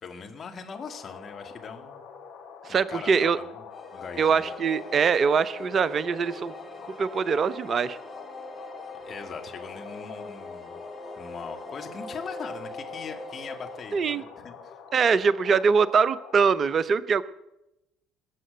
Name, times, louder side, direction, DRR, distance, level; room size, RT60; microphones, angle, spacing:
voice 1, 0.0-2.0 2.7-4.5 9.1-10.8 11.2-14.8, left 5 dB, 40° left, 5 dB, 2.4 m, -41 dB
sound 1, 0.7-16.5, left 6 dB, 60° left, 2.4 m, -46 dB
voice 2, 2.7-3.4 4.2-6.5 7.0-8.0 13.9-14.2 14.9-17.2, right 6 dB, 40° right, 17 dB, 0.6 m, -23 dB
sound 2, 3.7-13.8, left 2 dB, 20° left, 3.3 m, -42 dB
20.0 x 7.6 x 7.8 m, 0.89 s
figure-of-eight pair, 55°, 0 cm